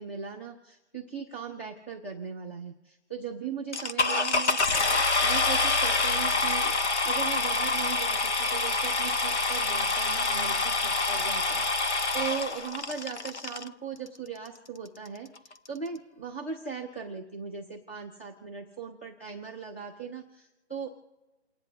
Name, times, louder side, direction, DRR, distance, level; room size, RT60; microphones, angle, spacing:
voice 1, 0.0-15.3 15.7-20.9, right 6 dB, 10° left, -2 dB, 0.6 m, -39 dB
sound 1, 3.7-13.7 14.5-14.6 15.1-15.2 15.4-15.7, left 3 dB, 85° left, 1.3 m, -26 dB
29.5 x 10.0 x 2.8 m, 1.2 s
hypercardioid pair, 170°, 34 cm